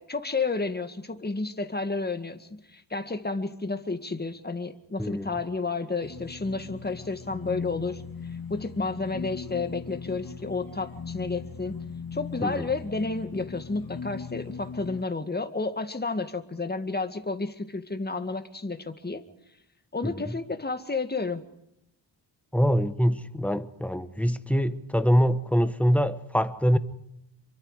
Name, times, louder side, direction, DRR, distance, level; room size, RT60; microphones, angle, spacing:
voice 1, 0.0-8.0 8.5-11.8 12.1-19.2 19.9-21.4, left 3 dB, 20° left, 2.0 m, -31 dB
sound 1, 6.0-15.0, left 6 dB, 50° left, 1.9 m, -39 dB
voice 2, 20.0-20.4 22.5-26.8, equal, 5° left, 1.3 m, -24 dB
27.0 x 24.0 x 5.0 m
wide cardioid pair, 105°, 45 cm